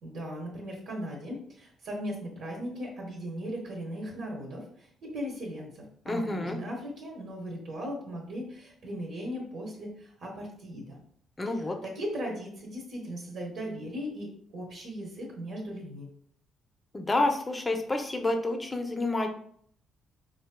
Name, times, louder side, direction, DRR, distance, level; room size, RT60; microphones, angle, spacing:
voice 1, 0.0-11.0 11.5-16.1, equal, 75° right, -2 dB, 1.0 m, -38 dB
voice 2, 6.1-6.6 11.4-11.8 16.9-19.3, left 2 dB, 20° left, 5 dB, 0.6 m, -29 dB
4.7 x 2.6 x 2.2 m, 0.62 s
cardioid pair, 90°, 0 cm